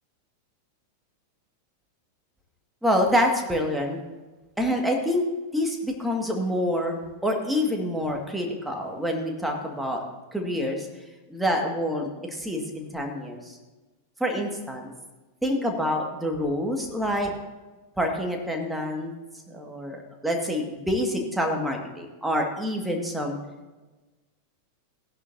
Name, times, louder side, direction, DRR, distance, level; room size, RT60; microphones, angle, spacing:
voice 1, 2.8-4.0 4.6-5.2 5.5-10.0 10.3-10.9 11.3-13.6 14.2-14.9 15.4-17.3 18.0-19.1 19.5-23.4, equal, 5° right, 1 dB, 1.9 m, -27 dB
16.0 x 11.0 x 2.7 m, 1.2 s
figure-of-eight pair, 90°, 0 cm